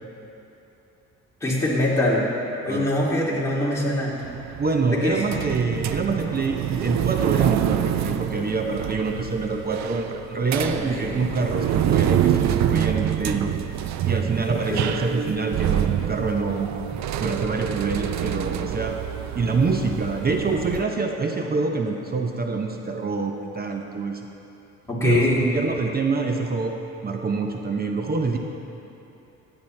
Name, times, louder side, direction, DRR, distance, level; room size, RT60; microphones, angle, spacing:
voice 1, 1.4-2.2 2.6-4.1 4.9-5.2 10.7-11.1 14.7-14.9 24.8-25.4, left 1 dB, 10° left, -6 dB, 2.5 m, -23 dB
sound 1, 4.2-20.8, right 10 dB, 65° right, 0.5 m, -26 dB
voice 2, 4.6-13.5 14.1-19.0 19.3-24.2 25.0-25.3 25.5-26.8 27.0-28.4, right 4 dB, 30° right, 3 dB, 0.7 m, -26 dB
13.0 x 9.0 x 3.3 m, 2.9 s
cardioid pair, 90°, 30 cm